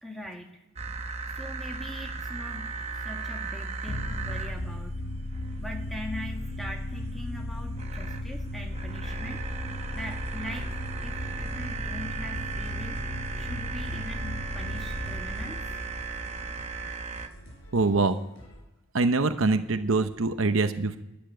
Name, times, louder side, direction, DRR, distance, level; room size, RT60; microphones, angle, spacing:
voice 1, 0.0-0.6 1.3-2.7 3.0-5.0 5.6-9.5 9.9-13.0 13.3-15.8, left 1 dB, ahead, 2 dB, 1.6 m, -41 dB
sound 1, 0.8-17.3, right 4 dB, 30° right, 0.9 m, -37 dB
sound 2, 3.9-17.3, left 1 dB, 90° left, 1.2 m, -36 dB
sound 3, 8.9-18.6, equal, 65° left, 4.8 m, -51 dB
voice 2, 17.7-18.2 18.9-21.0, right 3 dB, 65° right, 9 dB, 0.8 m, -24 dB
12.5 x 9.1 x 9.1 m, 0.96 s
head